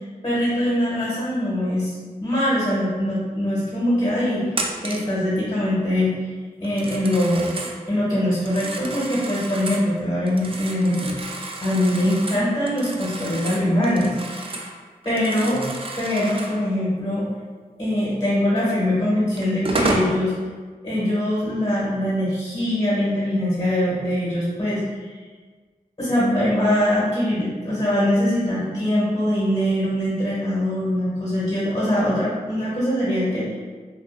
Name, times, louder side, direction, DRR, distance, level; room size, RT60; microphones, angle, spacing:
voice 1, 0.2-1.9 2.2-4.5 4.8-6.2 6.6-7.5 7.9-11.1 11.6-14.6 15.0-15.6 16.0-17.3 17.8-20.3 20.8-24.8 26.0-33.5, left 1 dB, 30° left, -8 dB, 1.0 m, -22 dB
Telephone, 4.5-5.1 6.6-7.8 8.3-9.9 10.3-14.8 15.0-16.6 18.7-18.8 19.4-20.1, right 2 dB, 35° right, 0.4 m, -31 dB
2.5 x 2.3 x 2.5 m, 1.5 s
cardioid pair, 45°, 15 cm